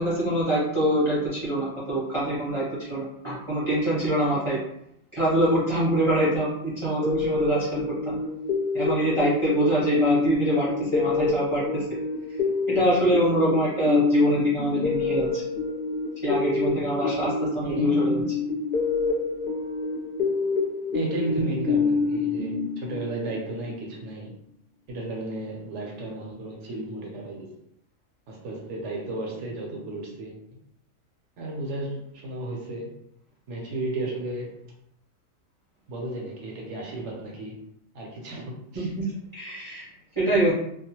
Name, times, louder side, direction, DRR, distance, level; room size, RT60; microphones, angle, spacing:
voice 1, 0.0-4.6 5.1-8.2 8.7-11.8 12.7-15.4 16.2-18.2 38.7-39.8 40.2-40.5, right 1 dB, 30° right, -8 dB, 0.6 m, -25 dB
sound 1, 7.0-23.4, left 4 dB, 55° left, 0.7 m, -27 dB
voice 2, 17.6-18.0 20.9-24.3 24.9-27.5 28.3-30.6 31.4-33.0 33.5-34.6 35.9-37.6 37.9-38.9, right 2 dB, 70° right, -1 dB, 0.8 m, -34 dB
2.3 x 2.0 x 2.8 m, 0.75 s
omnidirectional pair, 1.4 m